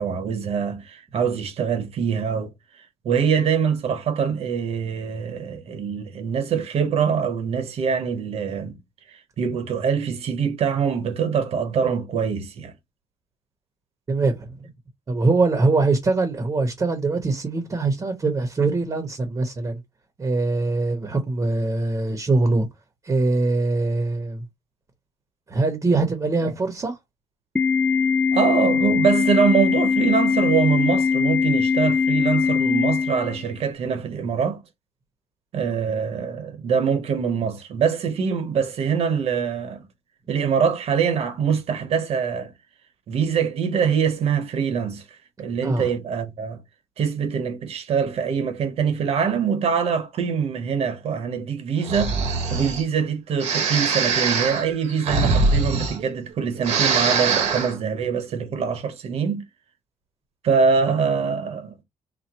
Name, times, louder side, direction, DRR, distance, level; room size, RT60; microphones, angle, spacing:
voice 1, 0.0-2.5 3.0-8.8 9.1-12.7 26.4-26.5 28.3-34.6 35.5-39.8 40.3-42.5 43.1-45.0 45.4-46.6 47.0-52.1 52.5-59.4 60.4-61.8, right 6 dB, 60° right, 1.2 m, -24 dB
voice 2, 14.1-14.5 15.1-19.8 20.2-22.7 23.0-24.5 25.5-27.0 45.6-45.9, right 3 dB, 30° right, 1.0 m, -22 dB
Organ, 27.6-33.6, left 5 dB, 10° left, 0.3 m, -21 dB
Breathing, 51.8-52.8 53.4-56.3 56.6-57.7, right 4 dB, 75° right, 1.4 m, -22 dB
4.3 x 2.2 x 4.3 m
cardioid pair, 130°, 12 cm